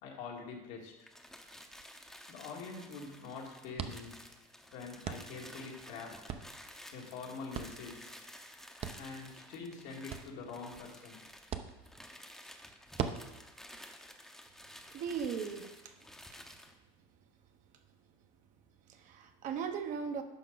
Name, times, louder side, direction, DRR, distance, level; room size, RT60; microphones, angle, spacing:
voice 1, 0.0-1.1 2.3-4.1 4.7-6.3 6.9-8.1 9.0-11.2, left 4 dB, 80° left, -1 dB, 2.1 m, -45 dB
sound 1, 1.0-16.8, left 1 dB, ahead, 0.8 m, -53 dB
sound 2, 1.1-15.3, right 8 dB, 40° right, 0.7 m, -46 dB
voice 2, 14.9-15.9 18.9-20.2, right 6 dB, 55° right, 6 dB, 1.0 m, -38 dB
10.5 x 5.7 x 3.9 m, 0.99 s
cardioid pair, 130°, 16 cm